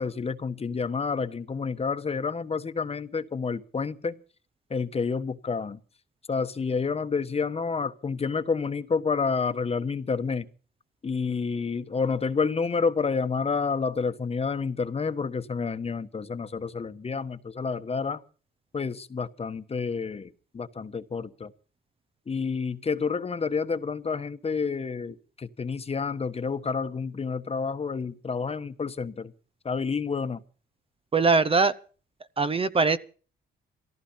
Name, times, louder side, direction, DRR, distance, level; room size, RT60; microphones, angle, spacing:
voice 1, 0.0-4.1 4.7-5.8 6.3-10.5 11.0-18.2 18.7-21.5 22.3-29.3 29.6-30.4, left 5 dB, 30° left, 1.2 m, -29 dB
voice 2, 31.1-31.7 32.4-33.0, right 4 dB, 30° right, 0.8 m, -21 dB
17.5 x 15.0 x 5.6 m
cardioid pair, 90°, 20 cm